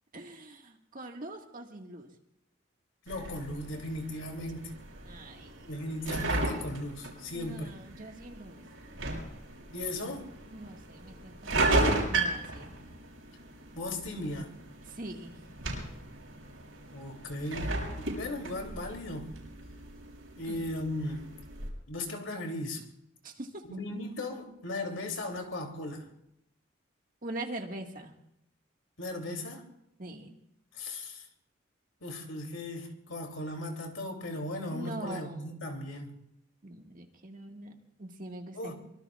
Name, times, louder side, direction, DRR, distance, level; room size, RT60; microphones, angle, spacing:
voice 1, 0.1-2.1 5.0-5.7 7.3-8.6 10.5-12.7 14.8-15.4 20.5-20.7 23.2-23.7 27.2-28.1 30.0-30.3 34.7-35.6 36.6-38.7, right 1 dB, 45° right, 1.8 m, -43 dB
voice 2, 3.0-4.7 5.7-7.7 9.7-10.3 13.7-14.5 16.9-19.3 20.4-21.3 21.9-22.8 23.7-26.1 29.0-29.7 30.7-31.3 32.0-36.1 38.5-38.7, left 1 dB, 75° left, 3.1 m, -37 dB
sound 1, 3.1-21.7, right 2 dB, 80° right, 6.2 m, -35 dB
24.0 x 23.5 x 2.5 m
head